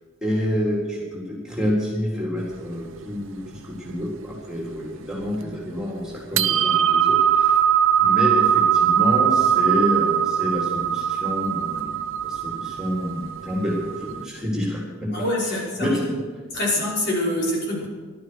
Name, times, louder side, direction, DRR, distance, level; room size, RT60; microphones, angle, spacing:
voice 1, 0.2-7.6 8.0-12.0 12.2-15.1 15.8-16.2, equal, 5° right, -4 dB, 3.8 m, -28 dB
sound 1, 2.4-4.4 4.7-4.8 5.2-5.8 6.2-14.3, right 9 dB, 65° right, 0.7 m, -21 dB
voice 2, 15.1-16.1 16.5-17.9, left 1 dB, 50° left, -4 dB, 5.3 m, -25 dB
16.0 x 12.5 x 6.4 m, 1.5 s
head